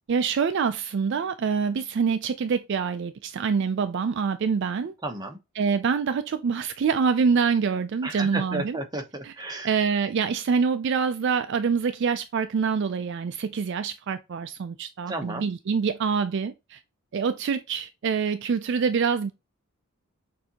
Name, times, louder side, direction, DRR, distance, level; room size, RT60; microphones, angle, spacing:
voice 1, 0.1-4.9 5.6-8.8 9.6-16.8 17.1-19.3, right 5 dB, 55° right, 0.3 m, -25 dB
voice 2, 5.0-5.4 8.0-9.8 15.1-15.5, right 2 dB, 20° right, 0.8 m, -33 dB
6.3 x 2.7 x 2.8 m
head